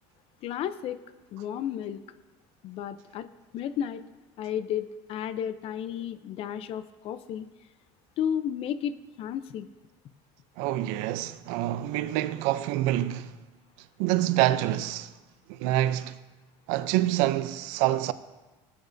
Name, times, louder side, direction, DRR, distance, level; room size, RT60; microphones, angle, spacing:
voice 1, 0.4-1.0 1.3-2.0 2.6-3.3 3.5-4.0 4.4-7.5 8.2-9.7, left 9 dB, 55° left, 0.6 m, -32 dB
voice 2, 10.6-13.4 14.0-15.1 15.5-16.2 16.7-18.1, right 14 dB, 80° right, 0.5 m, -26 dB
17.0 x 8.7 x 2.6 m
cardioid pair, 120°, 12 cm